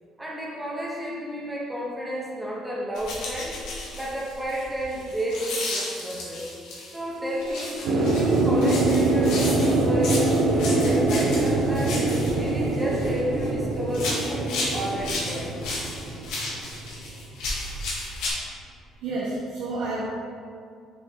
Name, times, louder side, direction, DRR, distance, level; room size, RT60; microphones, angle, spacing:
voice 1, 0.2-3.6 3.9-6.4 6.9-12.0 12.4-15.5, equal, 10° right, -4 dB, 1.0 m, -32 dB
sound 1, 2.9-7.0 7.4-13.5 13.9-18.3, left 2 dB, 85° left, 1.5 m, -34 dB
sound 2, 7.9-17.1 17.4-17.5, right 2 dB, 60° right, 0.7 m, -24 dB
voice 2, 19.0-20.0, right 2 dB, 85° right, -8 dB, 1.3 m, -30 dB
6.7 x 4.5 x 3.6 m, 2.2 s
cardioid pair, 140°, 0 cm